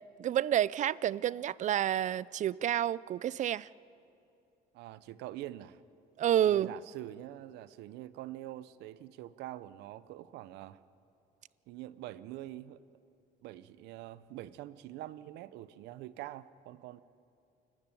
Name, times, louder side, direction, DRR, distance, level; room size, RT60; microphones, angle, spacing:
voice 1, 0.2-3.7 6.2-6.7, right 11 dB, 45° right, 0.4 m, -29 dB
voice 2, 4.7-5.8 6.5-10.8 11.7-12.8 13.4-17.0, right 14 dB, 85° right, 0.8 m, -45 dB
28.5 x 12.5 x 9.1 m
cardioid pair, 110°, 17 cm